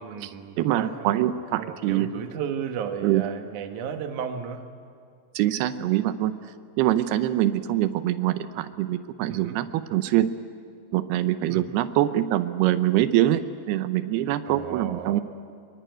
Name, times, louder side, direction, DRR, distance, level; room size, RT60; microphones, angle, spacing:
voice 1, 0.0-4.7 9.3-9.6 11.4-11.7 14.5-15.2, right 7 dB, 60° right, 6 dB, 2.6 m, -34 dB
voice 2, 0.6-2.1 3.0-3.2 5.4-6.3 6.8-10.3 10.9-15.2, right 13 dB, 90° right, 11 dB, 2.9 m, -24 dB
26.0 x 23.5 x 9.3 m, 2.2 s
omnidirectional pair, 4.5 m